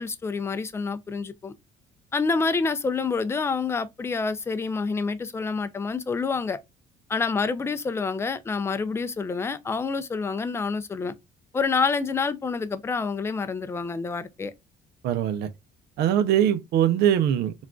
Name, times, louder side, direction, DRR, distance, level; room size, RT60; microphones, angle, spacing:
voice 1, 0.0-1.5 2.1-6.6 7.1-11.1 11.5-14.5, left 4 dB, 15° left, 0.3 m, -27 dB
voice 2, 15.0-15.5 16.0-17.5, right 10 dB, 75° right, 0.5 m, -22 dB
3.6 x 2.3 x 2.3 m
cardioid pair, 110°, 17 cm